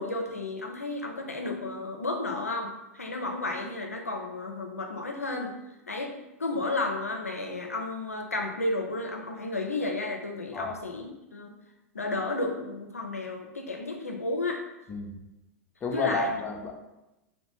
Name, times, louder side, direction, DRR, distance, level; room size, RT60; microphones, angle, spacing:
voice 1, 0.0-5.6 5.9-6.1 6.4-11.5 11.9-14.6 15.9-16.3, left 2 dB, 85° left, 3 dB, 0.4 m, -32 dB
voice 2, 15.8-16.7, left 3 dB, 20° left, 2 dB, 0.4 m, -31 dB
2.8 x 2.1 x 2.9 m, 0.97 s
figure-of-eight pair, 90°, 8 cm